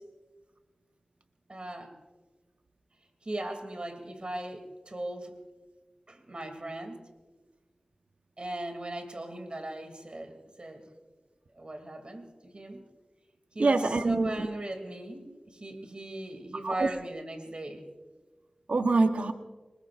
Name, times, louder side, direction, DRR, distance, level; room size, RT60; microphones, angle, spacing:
voice 1, 1.5-2.0 3.2-5.3 6.1-7.0 8.4-10.9 11.5-12.8 13.5-17.8, right 1 dB, 50° right, 5 dB, 2.9 m, -38 dB
voice 2, 13.6-14.5 16.6-16.9 18.7-19.3, right 3 dB, 80° right, 6 dB, 1.1 m, -25 dB
25.5 x 20.5 x 2.6 m, 1.3 s
cardioid pair, 40°, 2 cm